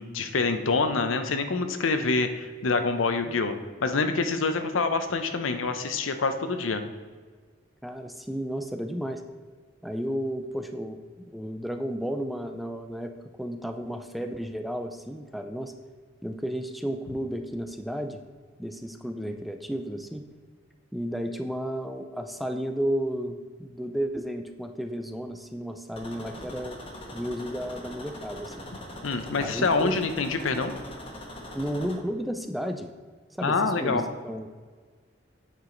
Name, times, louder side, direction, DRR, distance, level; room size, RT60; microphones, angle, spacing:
voice 1, 0.0-3.5 3.8-6.8 29.0-30.7 33.4-34.0, left 4 dB, 90° left, 8 dB, 0.7 m, -26 dB
voice 2, 7.8-9.2 9.8-13.1 13.4-15.7 16.2-18.2 18.6-20.3 20.9-26.8 27.1-28.5 29.4-30.0 31.5-32.9 33.3-34.5, equal, ahead, 6 dB, 0.4 m, -33 dB
sound 1, 25.9-32.0, left 1 dB, 30° left, 1.1 m, -42 dB
8.8 x 4.7 x 3.9 m, 1.5 s
head